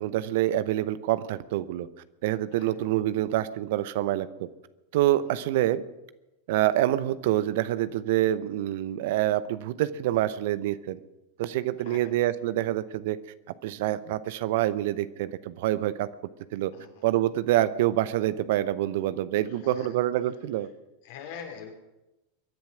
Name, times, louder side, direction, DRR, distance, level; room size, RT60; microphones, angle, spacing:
voice 1, 0.0-1.9 2.2-4.5 4.9-5.8 6.5-11.0 11.4-13.2 13.6-16.1 16.5-16.7 17.0-20.7, right 14 dB, 60° right, 15 dB, 0.8 m, -26 dB
voice 2, 2.5-2.9 5.2-5.3 11.9-12.1 16.7-17.0 19.5-19.9 21.0-21.7, left 7 dB, 60° left, 3 dB, 3.6 m, -44 dB
22.5 x 10.5 x 6.2 m, 0.97 s
figure-of-eight pair, 85°, 0 cm